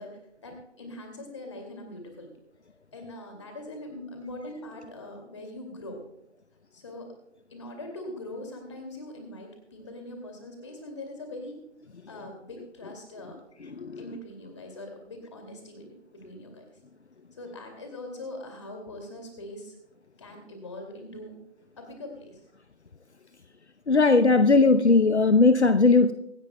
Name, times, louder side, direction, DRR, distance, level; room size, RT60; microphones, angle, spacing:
voice 1, 0.0-2.3 2.9-6.0 6.7-7.1 7.5-11.6 12.1-13.4 14.0-16.6 17.3-19.8 20.2-21.4 21.8-22.4, left 1 dB, 25° left, 3 dB, 2.4 m, -42 dB
voice 2, 13.6-14.0 23.9-26.1, left 3 dB, 65° left, 10 dB, 0.8 m, -19 dB
24.5 x 10.5 x 2.2 m, 0.77 s
figure-of-eight pair, 160°, 36 cm